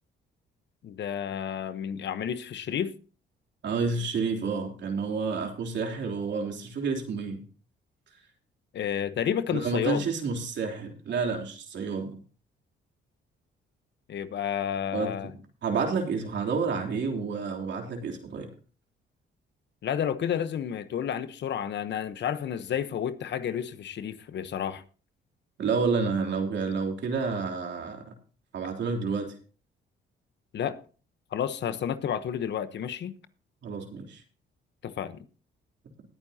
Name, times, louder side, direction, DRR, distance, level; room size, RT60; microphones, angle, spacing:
voice 1, 0.8-2.9 8.7-10.0 14.1-15.3 19.8-24.8 30.5-30.8 31.3-33.2 34.8-35.2, left 9 dB, 65° left, 1.1 m, -31 dB
voice 2, 3.6-7.5 9.5-12.2 14.9-15.3 15.6-18.5 25.6-28.2 28.5-29.3 33.6-34.2, right 4 dB, 65° right, 3.4 m, -30 dB
19.5 x 9.1 x 2.9 m
cardioid pair, 90°, 20 cm